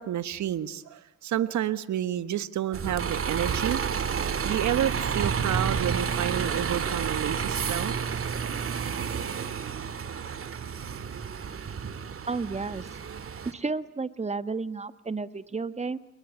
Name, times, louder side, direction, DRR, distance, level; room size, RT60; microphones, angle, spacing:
voice 1, 0.0-3.8 4.4-8.0, right 11 dB, 70° right, 13 dB, 1.6 m, -30 dB
Bus, 2.7-13.5, right 6 dB, 45° right, 2.4 m, -30 dB
voice 2, 12.3-12.9 13.4-16.0, right 4 dB, 20° right, 13 dB, 1.4 m, -32 dB
28.5 x 21.0 x 9.5 m, 0.80 s
cardioid pair, 90°, 30 cm